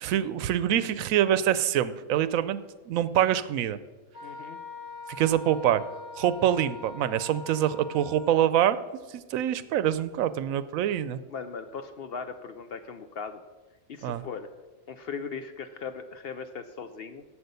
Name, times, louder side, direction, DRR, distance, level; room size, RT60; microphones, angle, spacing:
voice 1, 0.0-2.6 2.9-3.8 5.2-5.8 6.2-8.8 9.1-11.2 14.0-14.2, right 11 dB, 80° right, 15 dB, 1.0 m, -25 dB
Wind instrument woodwind instrument, 4.1-8.5, left 3 dB, 80° left, 2.9 m, -43 dB
voice 2, 4.2-4.6 11.3-13.4 13.9-14.5 14.9-17.2, left 5 dB, 60° left, 9 dB, 0.7 m, -38 dB
8.0 x 7.5 x 6.7 m, 1.3 s
omnidirectional pair, 1.4 m